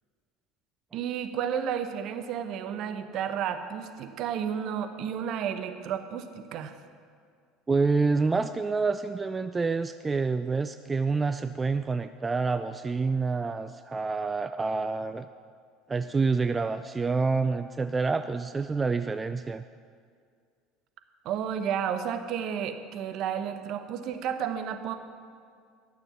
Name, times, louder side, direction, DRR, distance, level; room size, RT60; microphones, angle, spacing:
voice 1, 0.9-6.8 21.2-24.9, right 8 dB, 55° right, 8 dB, 0.9 m, -32 dB
voice 2, 7.7-15.3 15.9-19.6, right 4 dB, 20° right, 11 dB, 0.3 m, -27 dB
11.5 x 6.9 x 7.0 m, 2.2 s
hypercardioid pair, 70°, 0 cm